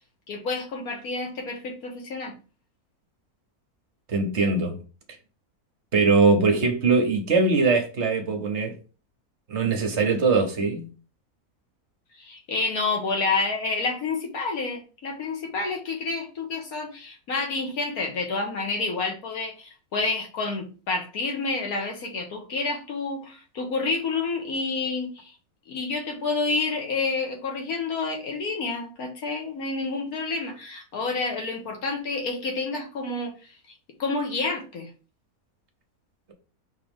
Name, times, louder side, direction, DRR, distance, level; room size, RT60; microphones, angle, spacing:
voice 1, 0.3-2.3 12.2-25.3 25.7-33.3 34.0-34.9, left 3 dB, 75° left, 1.6 m, -29 dB
voice 2, 4.1-4.7 5.9-8.7 9.5-10.9, right 4 dB, 55° right, 1.0 m, -21 dB
5.1 x 3.0 x 3.5 m
omnidirectional pair, 1.6 m